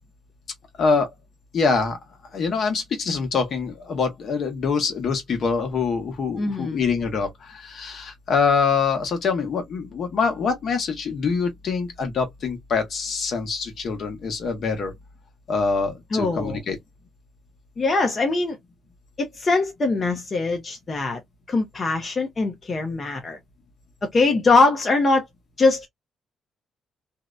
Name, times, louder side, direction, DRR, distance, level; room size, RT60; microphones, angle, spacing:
voice 1, 1.5-2.0 2.3-14.9 15.5-16.8, left 5 dB, 60° left, 1.0 m, -24 dB
voice 2, 6.4-6.8 16.1-16.6 17.8-18.6 19.2-21.2 21.5-23.4 24.1-25.2 25.6-25.9, left 3 dB, 35° left, 0.6 m, -22 dB
2.6 x 2.1 x 2.3 m
cardioid pair, 90°, 0 cm